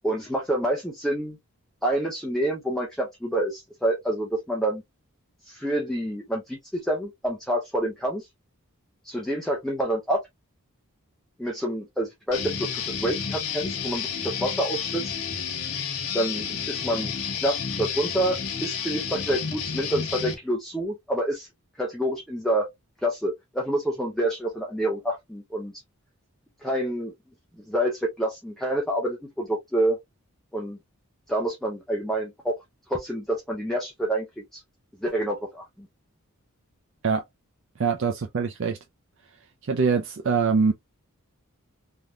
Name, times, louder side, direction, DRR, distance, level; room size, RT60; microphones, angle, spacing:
voice 1, 0.0-1.4 1.8-4.8 5.4-8.3 9.0-10.2 11.4-15.1 16.1-17.1 17.4-21.5 21.8-22.7 23.0-25.7 26.6-27.1 27.7-30.0 30.5-30.8 31.3-32.6 32.9-34.3 34.5-34.6 35.0-35.9, right 1 dB, ahead, 0.6 m, -27 dB
Guitar, 12.3-20.3, left 6 dB, 75° left, 0.9 m, -31 dB
voice 2, 37.8-38.8 39.7-40.7, right 5 dB, 55° right, 0.4 m, -23 dB
3.4 x 2.7 x 2.2 m
head